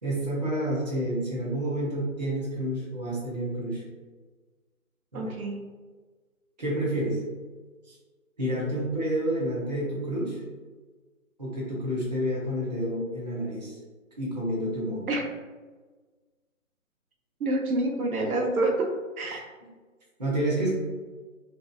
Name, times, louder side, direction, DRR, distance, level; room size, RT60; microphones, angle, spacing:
voice 1, 0.0-3.8 5.1-5.3 6.6-7.2 7.9-8.0 8.4-10.4 11.4-13.8 14.2-15.0 20.2-20.7, right 1 dB, 30° right, -6 dB, 0.5 m, -29 dB
voice 2, 5.1-5.6 15.1-15.2 17.4-18.9 19.2-19.4, right 2 dB, 85° right, 1 dB, 0.7 m, -27 dB
2.6 x 2.3 x 2.3 m, 1.4 s
figure-of-eight pair, 155°, 42 cm